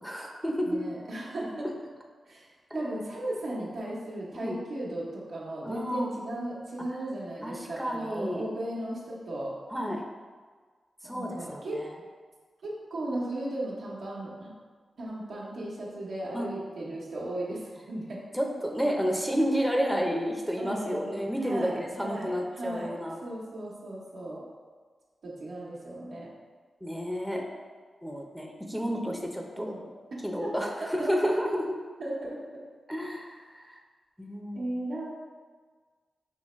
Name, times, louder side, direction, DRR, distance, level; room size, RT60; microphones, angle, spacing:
voice 1, 0.0-0.8 1.4-1.5 2.7-2.9 4.3-4.6 5.6-6.1 7.4-8.5 9.7-10.0 11.0-11.9 16.3-16.5 18.3-23.2 26.8-27.4 28.0-29.7 30.2-31.6 32.9-33.8 34.2-34.7, equal, ahead, 0 dB, 0.7 m, -31 dB
voice 2, 0.6-1.7 2.3-9.6 11.0-11.8 12.6-14.5 15.0-18.2 20.6-22.9 23.2-24.4 25.2-26.3 29.6-29.9 30.4-31.3 32.0-32.6 34.5-35.1, right 1 dB, 80° right, -5 dB, 1.1 m, -36 dB
5.5 x 2.9 x 3.1 m, 1.5 s
supercardioid pair, 40°, 0 cm